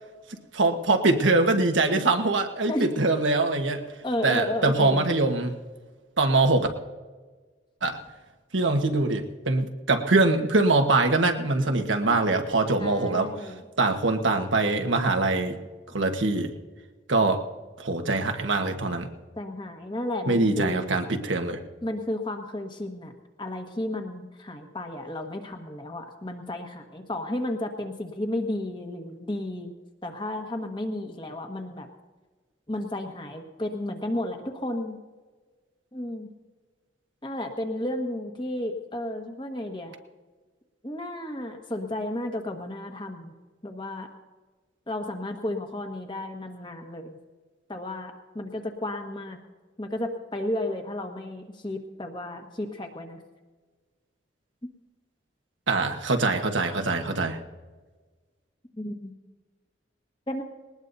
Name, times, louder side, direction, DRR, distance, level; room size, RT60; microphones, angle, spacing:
voice 1, 0.5-3.8 4.2-5.5 6.2-6.7 7.8-8.0 8.5-15.6 15.9-16.5 17.1-17.4 17.8-19.1 20.3-21.6 55.7-57.4, right 3 dB, 80° right, 5 dB, 1.4 m, -23 dB
voice 2, 4.0-5.1 12.8-13.7 19.4-20.9 21.8-23.1 23.4-29.7 30.0-31.9 32.7-35.0 35.9-36.3 37.2-39.9 40.8-43.3 43.6-44.1 44.9-47.2 47.7-49.4 49.8-53.2 58.7-59.1 60.3-60.4, left 1 dB, 25° left, 4 dB, 1.5 m, -33 dB
20.5 x 19.0 x 2.7 m, 1.3 s
head